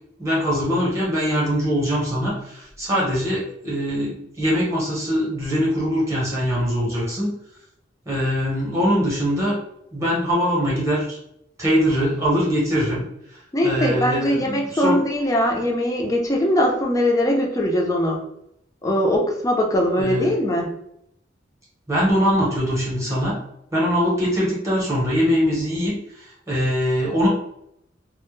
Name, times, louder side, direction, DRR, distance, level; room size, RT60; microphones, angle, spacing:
voice 1, 0.2-7.3 8.1-9.6 9.9-11.2 11.6-13.0 13.6-15.0 20.0-20.3 21.9-23.4 23.7-27.3, equal, 15° right, -6 dB, 0.8 m, -22 dB
voice 2, 13.5-18.2 18.8-20.7, left 1 dB, 20° left, 0 dB, 0.4 m, -21 dB
2.1 x 2.0 x 3.0 m, 0.75 s
head